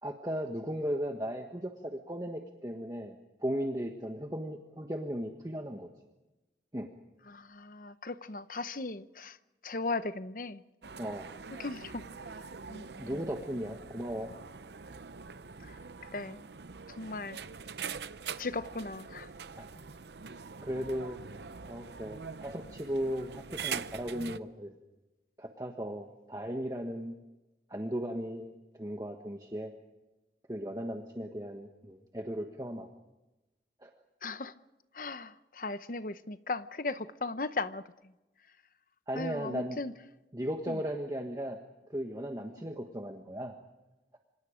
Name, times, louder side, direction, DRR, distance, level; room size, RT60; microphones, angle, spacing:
voice 1, 0.0-5.9 6.7-6.9 11.0-11.3 13.0-14.3 19.6-19.7 20.3-21.2 21.7-24.7 25.4-27.1 27.7-29.7 30.5-32.9 33.8-33.9 39.1-39.8 40.3-41.6 41.9-43.5, equal, 20° right, 1.3 m, -36 dB
voice 2, 7.3-9.4 9.6-10.6 11.0-11.1 11.6-12.0 12.7-13.2 15.6-15.8 16.0-16.5 16.9-17.4 17.8-18.0 18.4-19.3 34.2-34.5 34.9-38.1 39.1-39.9 40.7-40.8 42.6-42.7, left 3 dB, 50° left, 0.9 m, -37 dB
sound 1, 10.8-24.4, right 6 dB, 75° right, 0.7 m, -44 dB
26.5 x 26.0 x 5.1 m
head